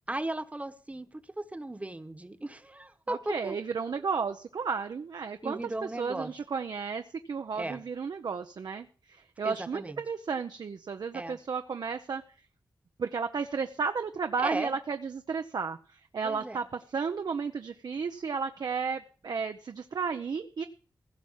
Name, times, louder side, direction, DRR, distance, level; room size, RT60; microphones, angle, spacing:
voice 1, 0.1-3.6 5.4-6.3 7.5-7.8 9.4-10.0 11.1-11.4 14.4-14.8 16.2-16.6, right 1 dB, 20° right, 10 dB, 1.1 m, -36 dB
voice 2, 3.1-5.6 6.0-12.2 13.0-20.6, right 5 dB, 70° right, 7 dB, 0.7 m, -33 dB
16.5 x 6.1 x 7.3 m, 0.43 s
wide cardioid pair, 80°, 7 cm